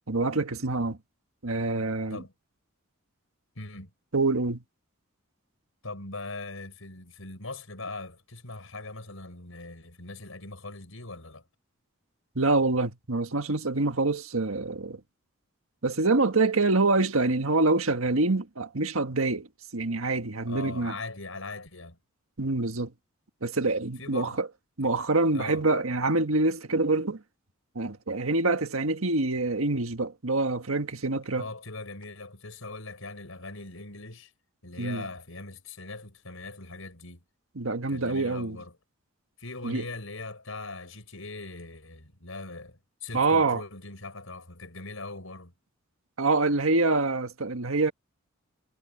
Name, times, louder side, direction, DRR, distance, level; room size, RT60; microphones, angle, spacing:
voice 1, 0.1-1.0 1.4-2.2 4.1-4.6 12.4-15.0 15.8-19.5 19.7-20.9 22.4-22.9 23.4-24.5 24.8-27.2 27.8-31.5 34.8-35.0 37.6-38.6 39.6-39.8 43.1-43.6 46.2-47.9, right 3 dB, 75° right, 1.6 m, -26 dB
voice 2, 3.6-3.9 5.8-11.4 20.5-22.0 24.0-24.4 24.8-25.0 25.3-25.6 31.3-34.3 34.6-37.2 37.9-38.7 39.4-45.5, left 3 dB, 75° left, 5.7 m, -40 dB
head